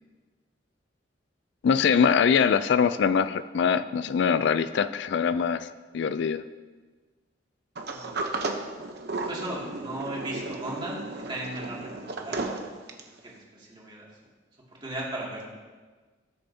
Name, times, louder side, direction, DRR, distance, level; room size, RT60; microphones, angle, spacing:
voice 1, 1.6-5.7 5.9-6.4, left 6 dB, 65° left, 13 dB, 0.4 m, -23 dB
voice 2, 7.8-8.3 9.3-11.0 11.3-12.6 13.2-14.0 14.8-15.5, right 1 dB, 25° right, -5 dB, 2.4 m, -36 dB
Sliding door, 7.8-13.2, right 3 dB, 60° right, 0.9 m, -34 dB
18.0 x 6.9 x 2.8 m, 1.4 s
head